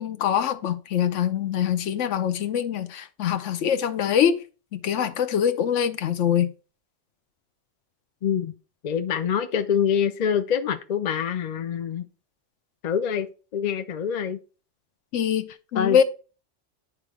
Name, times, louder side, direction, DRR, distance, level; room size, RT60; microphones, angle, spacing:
voice 1, 0.0-4.4 4.7-6.5 15.1-16.0, left 9 dB, 80° left, 1.0 m, -24 dB
voice 2, 8.2-8.5 8.8-12.0 12.8-14.4 15.7-16.0, left 8 dB, 60° left, 0.4 m, -25 dB
8.9 x 3.2 x 4.8 m
omnidirectional pair, 1.2 m